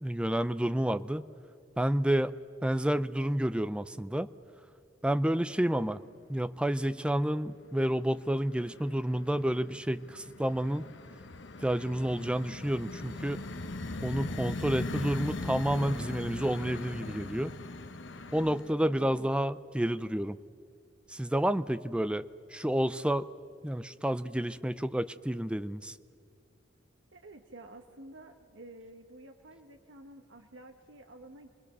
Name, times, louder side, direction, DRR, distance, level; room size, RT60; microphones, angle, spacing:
voice 1, 0.0-1.2 1.8-2.3 2.6-4.3 5.0-6.0 6.3-10.9 11.6-13.4 14.0-17.5 18.3-20.4 21.1-23.3 23.6-26.0, right 1 dB, 5° right, 13 dB, 0.5 m, -30 dB
sound 1, 5.8-6.2 6.5-7.2 7.6-18.7, left 2 dB, 65° left, 1.0 m, -40 dB
voice 2, 27.1-31.5, right 1 dB, 80° right, 4 dB, 1.1 m, -51 dB
26.0 x 20.5 x 6.7 m, 2.3 s
head